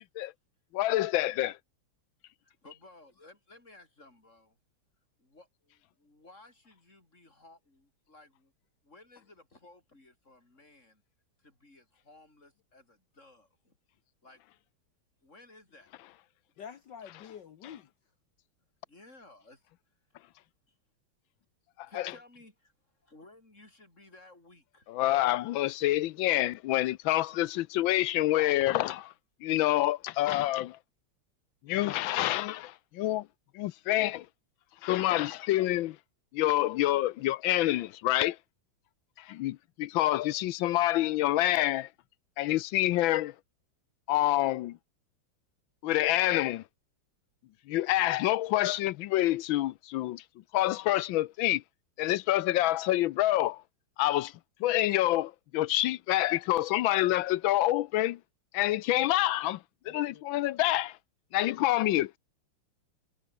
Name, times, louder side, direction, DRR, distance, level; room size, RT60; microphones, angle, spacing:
voice 1, 0.7-1.6 22.0-22.1 24.9-29.1 29.4-30.8 31.6-33.3 33.5-34.3 34.8-36.0 36.3-38.4 39.2-41.9 42.4-43.3 44.1-44.8 45.8-46.6 47.7-50.2 50.5-51.6 52.0-53.6 54.0-54.3 54.6-58.2 58.5-59.6 59.9-61.0 61.3-62.2, left 15 dB, 75° left, 1.3 m, -27 dB
voice 2, 2.4-4.6 5.2-8.5 8.8-11.0 11.4-13.8 14.2-14.4 15.2-16.0 18.9-19.6 20.7-20.8 21.8-24.9, left 2 dB, 30° left, 6.9 m, -57 dB
voice 3, 16.6-17.9 59.8-60.2, left 8 dB, 60° left, 1.6 m, -47 dB
omnidirectional pair, 2.4 m